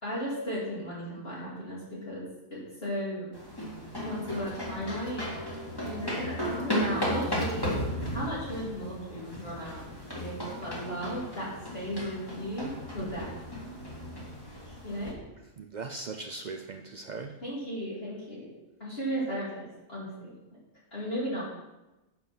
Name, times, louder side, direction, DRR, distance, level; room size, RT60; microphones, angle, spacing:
voice 1, 0.0-2.2 2.5-3.3 4.0-5.2 5.8-9.8 10.1-13.3 14.8-15.2 17.4-18.5 18.8-20.3 20.9-21.4, equal, 45° left, -8 dB, 2.7 m, -35 dB
sound 1, 3.3-15.1, equal, 15° left, 2.2 m, -35 dB
voice 2, 15.6-17.4, right 4 dB, 90° right, 5 dB, 0.4 m, -39 dB
8.7 x 5.6 x 6.0 m, 1.0 s
omnidirectional pair, 1.5 m